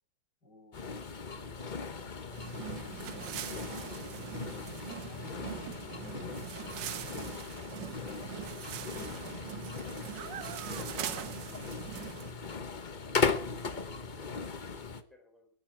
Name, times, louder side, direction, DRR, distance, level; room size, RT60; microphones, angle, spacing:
voice 1, 0.4-4.2 4.8-7.2 7.6-8.6 9.2-10.0 10.6-12.3, left 2 dB, 70° left, -5 dB, 6.8 m, -56 dB
sound 1, 0.7-15.0, left 5 dB, 35° left, 0.9 m, -38 dB
sound 2, 2.3-12.3, right 11 dB, 85° right, 1.7 m, -42 dB
voice 2, 11.0-11.4 13.3-15.5, equal, ahead, 2 dB, 4.8 m, -59 dB
21.0 x 9.3 x 6.0 m, 0.42 s
omnidirectional pair, 1.9 m